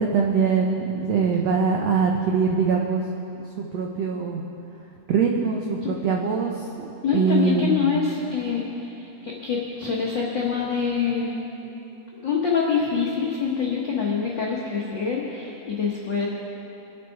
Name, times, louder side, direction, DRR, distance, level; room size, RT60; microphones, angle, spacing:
voice 1, 0.0-3.0 3.6-4.4 5.1-6.9 7.1-7.9, right 5 dB, 80° right, 0 dB, 1.4 m, -23 dB
voice 2, 7.0-11.4 12.1-16.3, left 6 dB, 90° left, -4 dB, 1.0 m, -25 dB
23.5 x 8.3 x 4.7 m, 2.9 s
omnidirectional pair, 4.2 m